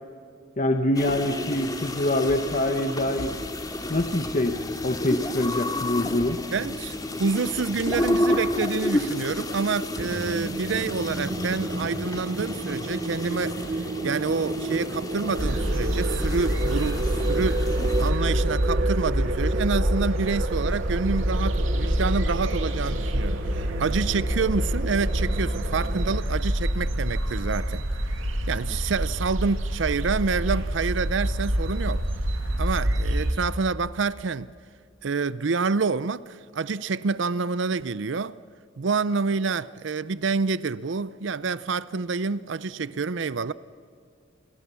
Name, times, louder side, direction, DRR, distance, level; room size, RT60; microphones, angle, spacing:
voice 1, 0.6-3.3 3.9-4.6 4.8-6.4, left 1 dB, 40° left, 1.1 m, -25 dB
sound 1, 0.9-18.1, left 1 dB, 20° left, 2.2 m, -31 dB
voice 2, 6.5-27.8 28.5-32.0 32.6-34.5 35.0-38.4 38.8-43.5, right 4 dB, 65° right, 0.6 m, -28 dB
sound 2, 10.0-26.2, right 2 dB, 40° right, 1.1 m, -32 dB
sound 3, 15.4-33.3, equal, 85° right, 2.5 m, -26 dB
30.0 x 23.5 x 7.0 m
head